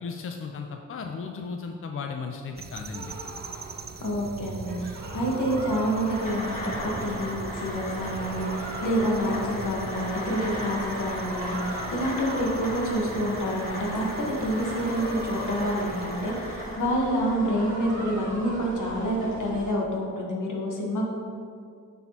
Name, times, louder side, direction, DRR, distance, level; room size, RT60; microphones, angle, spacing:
voice 1, 0.0-3.2, left 5 dB, 45° left, 3 dB, 0.5 m, -35 dB
sound 1, 2.6-16.9, right 4 dB, 35° right, 0.4 m, -42 dB
sound 2, 2.9-19.8, right 1 dB, 70° right, 1.5 m, -40 dB
voice 2, 4.0-14.1 14.4-21.1, equal, 80° left, -2 dB, 1.3 m, -28 dB
sound 3, 6.0-19.7, left 1 dB, 25° left, 1.5 m, -37 dB
6.9 x 6.2 x 2.9 m, 2.3 s
wide cardioid pair, 85°, 31 cm